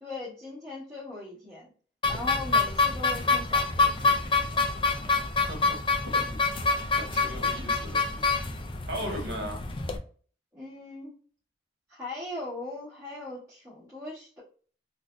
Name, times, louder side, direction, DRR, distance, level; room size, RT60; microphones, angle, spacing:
voice 1, 0.0-1.7 2.1-4.2 7.3-7.6 9.0-9.3 10.5-11.1 11.9-14.4, left 2 dB, 15° right, -10 dB, 1.3 m, -39 dB
sound 1, 2.0-10.0, left 3 dB, 25° left, 0.4 m, -26 dB
voice 2, 6.9-8.4 8.9-9.6, equal, 60° right, 3 dB, 1.0 m, -37 dB
3.9 x 2.1 x 2.5 m, 0.43 s
head